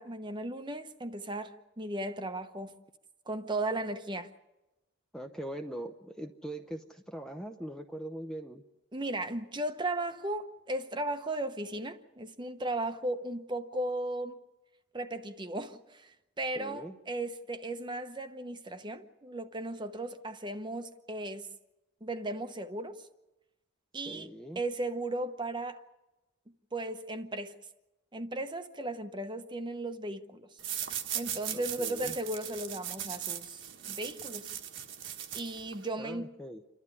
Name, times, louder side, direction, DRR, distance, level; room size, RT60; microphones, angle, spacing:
voice 1, 0.0-2.8 3.3-4.3 8.9-14.4 14.9-21.5 22.0-23.0 23.9-24.3 24.5-25.8 26.7-27.6 28.1-30.5 31.1-34.5 35.3-36.3, right 2 dB, 20° right, 0.9 m, -36 dB
voice 2, 5.1-8.6 16.6-16.9 24.1-24.6 31.5-32.2 36.0-36.6, right 1 dB, 5° left, 0.7 m, -41 dB
sound 1, 30.6-35.9, right 9 dB, 60° right, 1.4 m, -39 dB
28.5 x 12.5 x 9.7 m
head